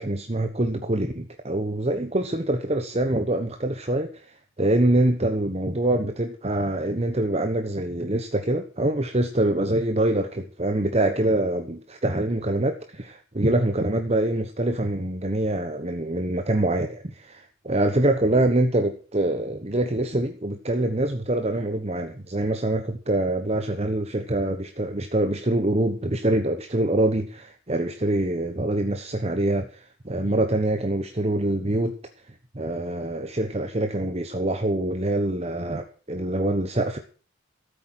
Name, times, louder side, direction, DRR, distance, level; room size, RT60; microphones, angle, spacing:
voice 1, 0.0-31.9 32.3-37.0, right 1 dB, 35° right, 6 dB, 1.1 m, -25 dB
14.0 x 8.5 x 7.9 m, 0.40 s
head